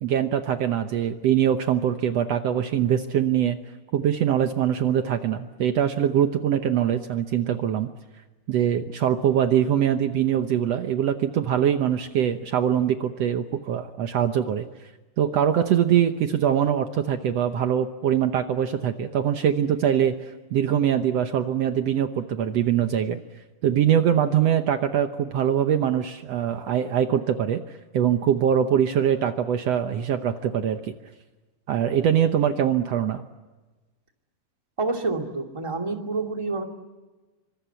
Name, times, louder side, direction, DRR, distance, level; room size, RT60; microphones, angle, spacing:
voice 1, 0.0-3.6 3.9-7.9 8.5-14.7 15.2-23.2 23.6-27.6 27.9-30.9 31.7-33.2, right 9 dB, 90° right, 7 dB, 1.4 m, -23 dB
voice 2, 34.8-36.6, right 3 dB, 10° right, 3 dB, 1.8 m, -28 dB
26.5 x 25.5 x 8.2 m, 1.2 s
omnidirectional pair, 4.4 m